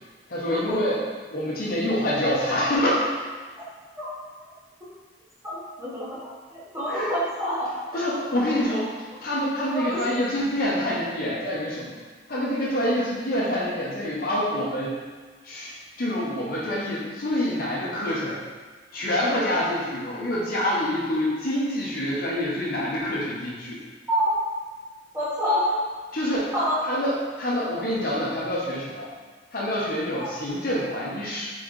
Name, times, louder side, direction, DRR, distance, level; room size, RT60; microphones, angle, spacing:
voice 1, 0.3-1.0 1.3-3.1 6.9-7.1 7.9-8.9 9.2-11.9 12.3-15.0 15.4-18.4 18.9-23.8 26.1-26.5 26.8-29.1 29.5-31.5, left 1 dB, 55° left, -5 dB, 0.9 m, -26 dB
voice 2, 5.4-7.7 9.6-10.3 24.1-24.3 25.1-25.8 26.5-26.7 30.1-30.3, equal, 15° right, -10 dB, 1.4 m, -27 dB
4.2 x 4.0 x 3.1 m, 1.4 s
head